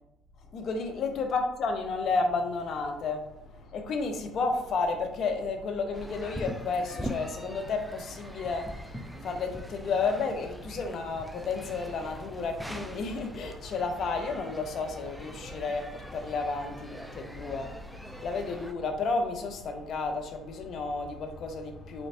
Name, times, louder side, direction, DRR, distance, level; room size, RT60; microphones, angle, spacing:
voice 1, 0.5-22.1, left 4 dB, 55° left, 0.7 m, -32 dB
sound 1, 5.9-18.7, equal, ahead, 0.4 m, -42 dB
4.2 x 3.1 x 2.7 m
hypercardioid pair, 65°, 0 cm